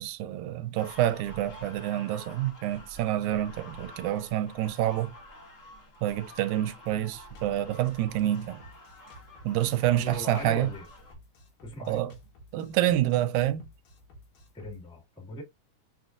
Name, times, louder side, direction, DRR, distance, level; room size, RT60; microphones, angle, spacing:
voice 1, 0.0-5.1 6.0-8.6 9.4-10.7 11.9-12.1 12.5-13.7, right 13 dB, 80° right, 2.0 m, -27 dB
sound 1, 0.8-11.1, left 1 dB, 60° left, 0.8 m, -49 dB
Drum kit, 6.9-14.8, equal, 80° left, 3.0 m, -53 dB
voice 2, 9.9-10.8 11.6-12.0 14.5-15.4, left 1 dB, ahead, 1.3 m, -39 dB
6.1 x 2.5 x 2.5 m
omnidirectional pair, 3.5 m